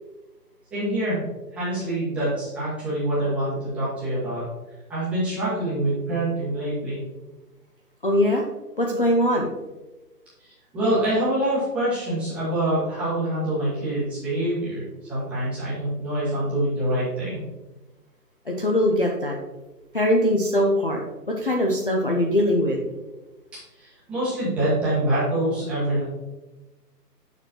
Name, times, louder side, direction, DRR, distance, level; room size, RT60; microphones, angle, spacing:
voice 1, 0.7-1.2 1.5-4.4 4.9-7.0 10.7-14.8 15.1-17.4 23.5-26.0, right 1 dB, 5° right, -11 dB, 1.0 m, -25 dB
voice 2, 8.0-8.4 8.8-9.5 18.5-19.4 19.9-21.0 21.4-22.8, equal, 35° left, 0 dB, 0.5 m, -21 dB
6.7 x 6.1 x 2.8 m, 1.1 s
hypercardioid pair, 160°, 49 cm